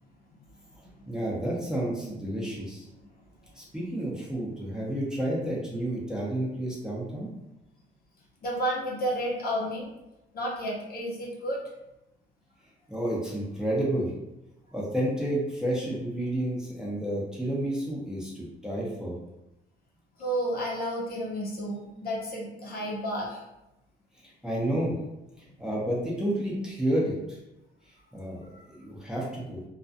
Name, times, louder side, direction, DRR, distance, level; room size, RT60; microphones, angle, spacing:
voice 1, 1.1-2.8 3.6-7.3 12.9-14.1 14.7-19.1 24.4-24.9 25.4-27.4 28.1-29.6, right 1 dB, 5° right, -5 dB, 0.7 m, -30 dB
voice 2, 8.4-9.9 10.3-11.6 20.2-23.4 28.5-28.6, equal, 50° left, -4 dB, 0.8 m, -31 dB
2.3 x 2.2 x 2.6 m, 0.92 s
cardioid pair, 90°, 20 cm